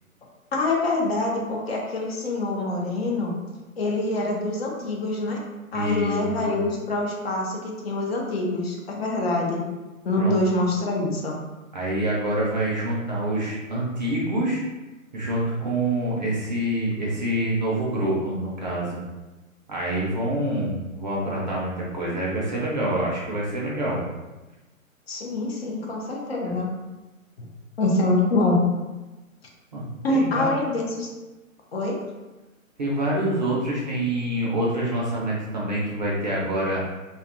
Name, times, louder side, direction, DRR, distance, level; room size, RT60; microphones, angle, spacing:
voice 1, 0.5-3.3 3.8-5.4 5.7-9.7 10.0-11.4 25.1-26.7 27.4-27.5 27.8-28.6 30.0-31.1 31.7-32.0, left 2 dB, 50° left, -1 dB, 0.5 m, -25 dB
voice 2, 5.7-6.6 10.2-10.3 11.7-14.6 15.1-19.0 19.7-24.0 29.7-30.5 32.8-36.8, right 1 dB, 35° right, -5 dB, 0.5 m, -26 dB
2.6 x 2.2 x 2.4 m, 1.1 s
hypercardioid pair, 145°, 42 cm